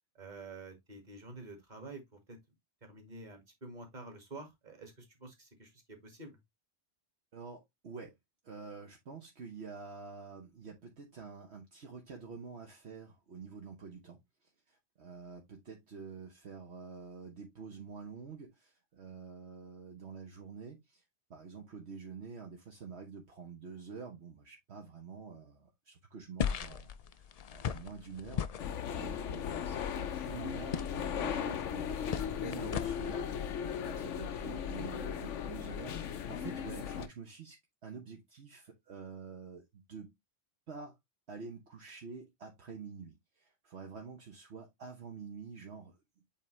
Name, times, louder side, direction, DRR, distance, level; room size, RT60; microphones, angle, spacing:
voice 1, 0.1-2.0 2.3-2.4 2.8-6.4, right 3 dB, 40° right, 2.1 m, -49 dB
voice 2, 7.3-8.1 8.4-21.0 21.3-28.5 28.9-33.3 33.9-40.1 40.7-41.0 41.3-46.0, right 5 dB, 65° right, 1.4 m, -48 dB
sound 1, 26.4-33.1, left 7 dB, 65° left, 0.3 m, -39 dB
sound 2, 28.6-37.1, left 8 dB, 90° left, 1.1 m, -37 dB
8.2 x 3.6 x 3.2 m
omnidirectional pair, 1.2 m